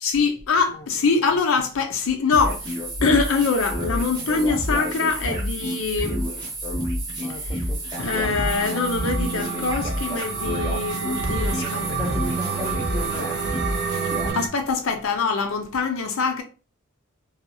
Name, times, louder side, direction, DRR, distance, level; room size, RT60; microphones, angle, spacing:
voice 1, 0.0-6.2 7.4-7.6 8.0-12.3 14.3-16.4, left 4 dB, 80° left, 0.5 m, -24 dB
sound 1, 2.3-14.3, equal, 20° right, 0.8 m, -29 dB
sound 2, 8.0-14.5, right 6 dB, 50° right, 0.3 m, -30 dB
voice 2, 11.6-13.4, equal, 15° left, 0.6 m, -35 dB
2.8 x 2.3 x 2.6 m
head